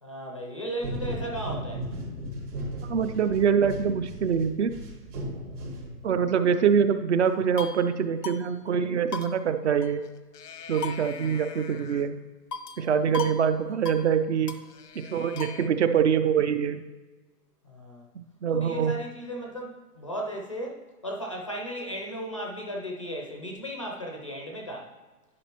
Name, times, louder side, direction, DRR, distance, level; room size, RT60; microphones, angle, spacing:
voice 1, 0.0-1.9 5.3-5.7 17.6-18.1 18.6-24.9, equal, 25° left, 0 dB, 0.4 m, -36 dB
sound 1, 0.8-6.3, right 1 dB, 70° right, 2.4 m, -36 dB
voice 2, 2.8-4.7 6.0-10.0 10.7-12.1 12.8-14.6 15.0-16.8 18.2-18.9, right 7 dB, 50° right, 10 dB, 0.5 m, -24 dB
sound 2, 7.3-7.9 8.2-8.4 8.7-8.8 9.1-10.1 10.3-12.1 12.5-12.9 13.1-13.4 13.7-14.0 14.5-15.7, left 5 dB, 90° left, 0.9 m, -38 dB
10.5 x 5.1 x 2.9 m, 1.2 s
hypercardioid pair, 140°, 47 cm